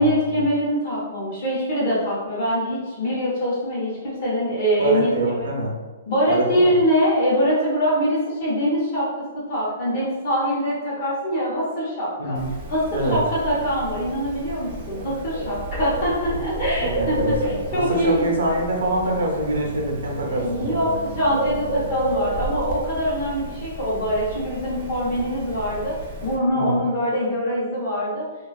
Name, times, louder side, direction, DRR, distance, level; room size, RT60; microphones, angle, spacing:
voice 1, 0.0-5.5 6.1-12.4 12.7-12.8 13.1-18.3 20.3-26.0 26.2-28.2, equal, 35° left, -6 dB, 0.8 m, -23 dB
voice 2, 4.8-5.7 6.3-6.8 12.2-12.5 12.9-13.2 16.3-16.4 16.8-20.8 26.5-26.8, right 1 dB, 75° right, -1 dB, 0.6 m, -25 dB
Bird, 12.3-26.3, equal, 20° right, 0.4 m, -31 dB
2.4 x 2.3 x 2.3 m, 1.3 s
hypercardioid pair, 175°, 0 cm